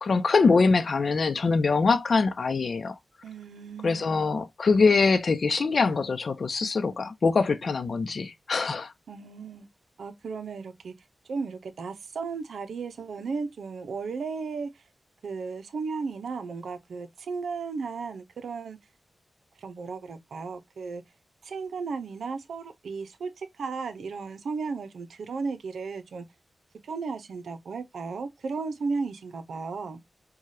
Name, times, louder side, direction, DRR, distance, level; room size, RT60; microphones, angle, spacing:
voice 1, 0.0-2.9 3.8-8.9, left 4 dB, 65° left, 0.6 m, -23 dB
voice 2, 3.2-4.3 9.1-9.7 10.0-10.9 11.3-14.8 15.2-18.8 19.6-21.0 21.4-26.3 26.8-30.0, right 4 dB, 90° right, 0.6 m, -35 dB
4.7 x 2.3 x 2.7 m
cardioid pair, 60°, 0 cm